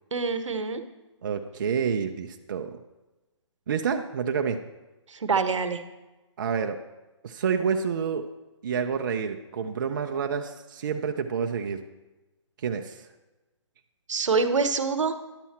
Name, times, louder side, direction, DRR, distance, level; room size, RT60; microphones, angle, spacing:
voice 1, 0.1-0.8 5.1-5.8 14.1-15.2, right 4 dB, 80° right, 10 dB, 0.9 m, -25 dB
voice 2, 1.2-2.7 3.7-4.6 6.4-6.8 7.2-8.2 8.6-11.8 12.6-13.0, right 6 dB, 40° right, 5 dB, 0.5 m, -28 dB
10.5 x 7.2 x 4.2 m, 1.1 s
hypercardioid pair, 160°, 16 cm